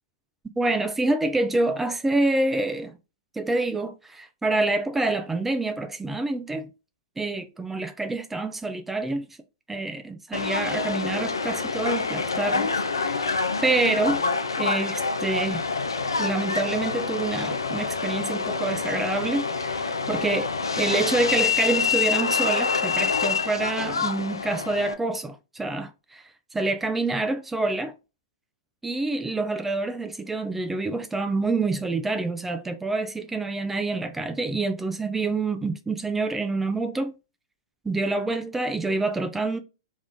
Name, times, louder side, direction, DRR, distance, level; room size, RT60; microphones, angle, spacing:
voice 1, 0.6-2.9 3.4-6.7 7.2-9.3 9.7-13.3 13.6-14.2 14.6-15.6 16.2-26.2 26.5-27.9 28.8-37.1 37.9-39.6, right 2 dB, 10° right, 0.4 m, -27 dB
Subway metro underground, 10.3-24.9, left 5 dB, 80° left, 0.4 m, -26 dB
3.4 x 2.4 x 3.7 m
figure-of-eight pair, 110°, 2 cm